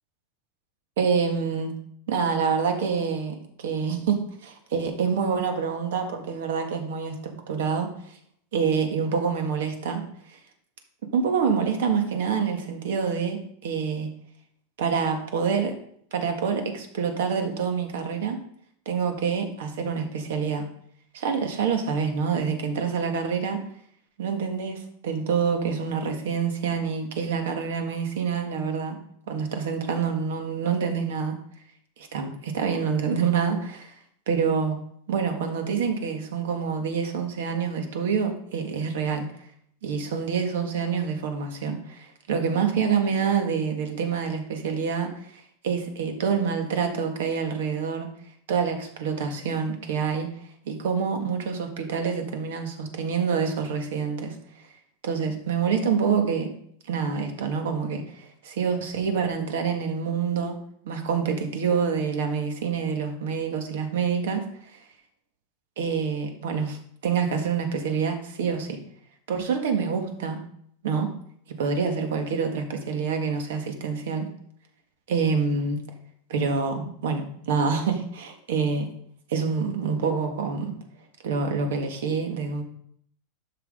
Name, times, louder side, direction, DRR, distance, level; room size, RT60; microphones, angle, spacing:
voice 1, 1.0-1.7 2.1-7.9 8.5-10.0 10.3-10.4 11.1-14.1 14.8-15.8 16.1-18.4 18.8-20.6 21.1-23.6 24.2-29.0 29.3-31.3 32.0-33.9 34.3-34.8 35.1-39.3 39.8-48.1 48.5-50.3 50.6-54.3 55.0-56.5 56.8-60.6 60.8-64.8 65.8-66.8 67.0-68.8 69.3-70.4 70.8-71.1 71.5-74.3 75.1-75.8 76.3-78.9 79.3-80.7 81.2-82.6, right 6 dB, 70° right, 5 dB, 1.7 m, -27 dB
12.0 x 5.9 x 3.7 m, 0.66 s
supercardioid pair, 180°, 0 cm